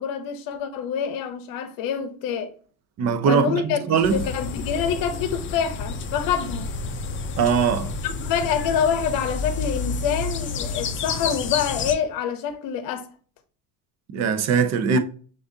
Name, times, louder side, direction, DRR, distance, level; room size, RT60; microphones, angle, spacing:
voice 1, 0.0-2.5 3.3-6.7 8.0-13.1, left 7 dB, 55° left, 0.8 m, -26 dB
voice 2, 3.0-4.2 7.4-7.9 14.1-15.0, right 6 dB, 40° right, 0.6 m, -21 dB
sound 1, 4.0-11.9, left 4 dB, 30° left, 0.5 m, -30 dB
6.2 x 2.6 x 2.7 m
supercardioid pair, 120°, 41 cm